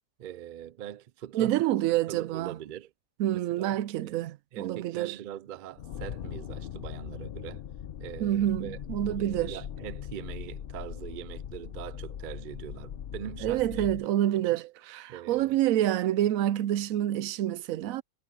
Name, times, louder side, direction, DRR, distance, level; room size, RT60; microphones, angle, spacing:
voice 1, 0.2-1.6 1.8-2.9 3.3-4.3 4.5-7.6 8.0-14.6 15.1-15.5, right 11 dB, 65° right, 0.5 m, -42 dB
voice 2, 1.3-2.5 3.2-5.2 8.2-9.6 13.4-18.0, right 13 dB, 80° right, 1.0 m, -27 dB
sound 1, 5.8-14.0, left 9 dB, 55° left, 0.7 m, -40 dB
omnidirectional pair, 1.4 m